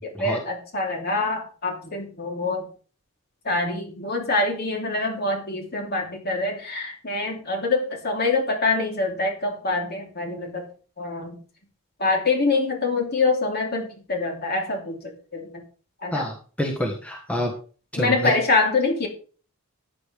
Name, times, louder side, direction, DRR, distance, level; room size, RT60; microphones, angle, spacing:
voice 1, 0.0-2.7 3.4-10.6 11.0-11.4 12.0-15.5 16.0-16.3 18.0-19.1, left 3 dB, 45° left, 1 dB, 3.4 m, -25 dB
voice 2, 16.1-17.5 17.9-18.3, equal, 5° left, 1 dB, 1.4 m, -27 dB
14.0 x 9.9 x 3.5 m, 0.40 s
head